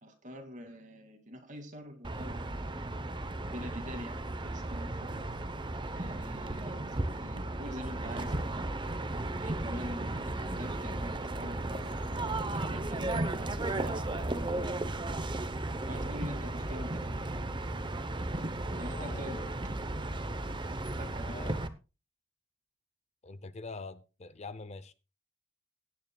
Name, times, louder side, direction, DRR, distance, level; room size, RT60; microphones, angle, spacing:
voice 1, 0.0-2.5 3.5-5.1 5.9-8.5 9.4-12.1 12.5-14.7 15.9-17.3 18.8-19.5 21.0-21.5, equal, 40° right, 2.4 m, -45 dB
sound 1, 2.0-21.7, right 2 dB, 25° right, 0.8 m, -35 dB
voice 2, 18.9-19.6 21.2-21.7 23.2-24.9, left 3 dB, 35° left, 0.6 m, -44 dB
17.0 x 9.6 x 2.3 m
head